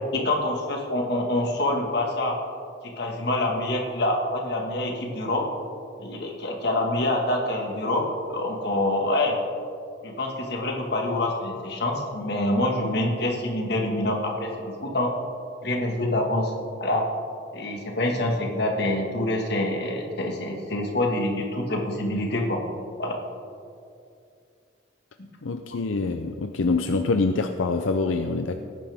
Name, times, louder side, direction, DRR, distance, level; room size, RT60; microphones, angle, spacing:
voice 1, 0.1-2.4 3.0-5.5 6.0-9.4 10.0-15.1 15.6-16.5 16.8-17.1 17.5-22.6 23.0-23.2 25.2-25.3, left 1 dB, 55° left, 1 dB, 1.8 m, -26 dB
voice 2, 25.4-28.6, left 3 dB, 85° left, 6 dB, 0.6 m, -25 dB
18.0 x 10.0 x 3.6 m, 2.5 s
head